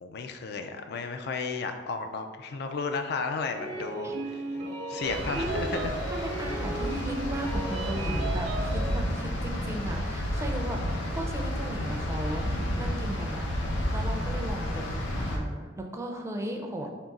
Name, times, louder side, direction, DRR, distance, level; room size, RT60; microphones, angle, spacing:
voice 1, 0.0-4.4 4.9-6.0 14.7-15.3, left 4 dB, 60° left, 7 dB, 0.4 m, -34 dB
sound 1, 3.5-9.0, right 3 dB, 75° right, 0.6 m, -35 dB
sound 2, 5.0-15.4, equal, 85° left, 0.7 m, -31 dB
voice 2, 5.3-5.8 6.1-14.9 15.2-16.9, right 1 dB, 15° right, 2 dB, 0.4 m, -36 dB
3.6 x 2.8 x 4.0 m, 1.4 s
head